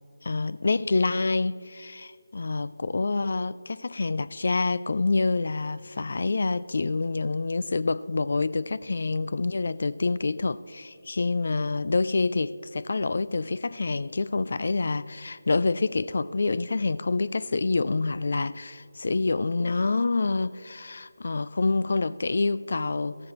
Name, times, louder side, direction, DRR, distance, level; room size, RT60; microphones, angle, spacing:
voice 1, 0.2-23.2, left 3 dB, 55° left, 17 dB, 0.3 m, -27 dB
15.5 x 14.0 x 3.0 m, 2.3 s
figure-of-eight pair, 160°, 0 cm